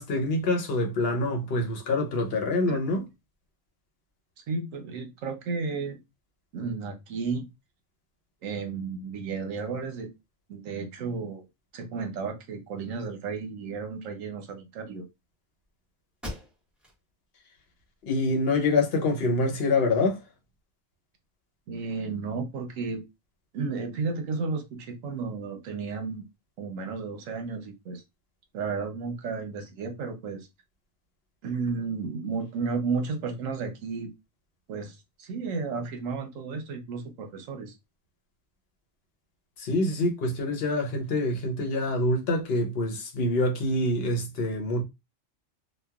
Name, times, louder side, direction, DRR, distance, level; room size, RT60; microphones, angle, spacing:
voice 1, 0.0-3.1 18.0-20.2 39.6-44.8, left 2 dB, 55° left, 0.9 m, -26 dB
voice 2, 4.5-6.0 6.5-7.5 8.4-10.1 10.5-11.4 11.7-15.0 21.7-23.0 23.5-26.2 26.6-28.0 28.5-30.5 31.4-34.1 34.7-37.7, right 4 dB, 80° right, 1.1 m, -33 dB
sound 1, 15.6-15.7 16.2-17.0 17.5-17.6 18.1-19.0, left 1 dB, ahead, 0.7 m, -42 dB
2.9 x 2.3 x 2.3 m
omnidirectional pair, 1.3 m